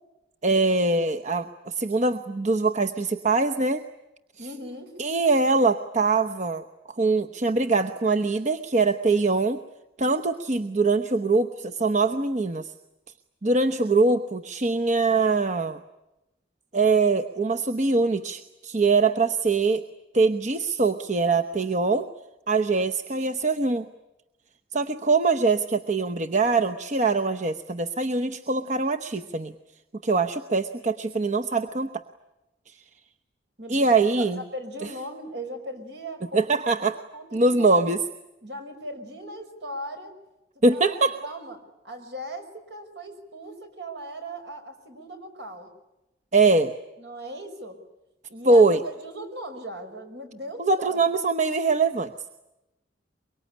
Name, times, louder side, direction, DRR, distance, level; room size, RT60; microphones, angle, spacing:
voice 1, 0.4-3.8 5.0-9.6 10.0-12.7 13.4-15.8 16.7-19.8 20.1-22.1 22.5-23.9 24.7-29.5 30.0-32.0 33.7-34.4 36.3-37.0 37.3-38.0 40.6-41.2 46.3-46.7 48.4-48.8 50.6-52.1, right 3 dB, 40° right, 6 dB, 0.9 m, -23 dB
voice 2, 4.4-4.9 33.6-33.8 34.2-36.5 36.9-37.8 38.4-40.1 40.6-41.6 41.8-45.7 47.0-47.8 48.3-51.1, equal, 70° right, 7 dB, 5.5 m, -38 dB
24.0 x 23.5 x 10.0 m, 0.94 s
head